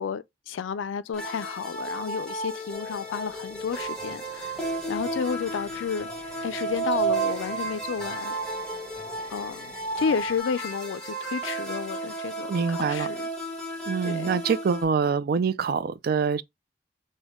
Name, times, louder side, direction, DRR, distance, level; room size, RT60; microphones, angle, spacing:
voice 1, 0.0-4.6 4.9-6.1 6.4-8.4 9.3-9.7 10.0-13.3 14.0-14.4, left 6 dB, 80° left, 0.4 m, -31 dB
sound 1, 1.1-14.8, right 3 dB, 5° left, 0.9 m, -33 dB
Singing, 2.7-10.4, left 4 dB, 30° left, 1.2 m, -47 dB
voice 2, 12.5-13.1 13.9-16.4, right 5 dB, 50° right, 0.4 m, -25 dB
6.1 x 2.1 x 3.5 m
head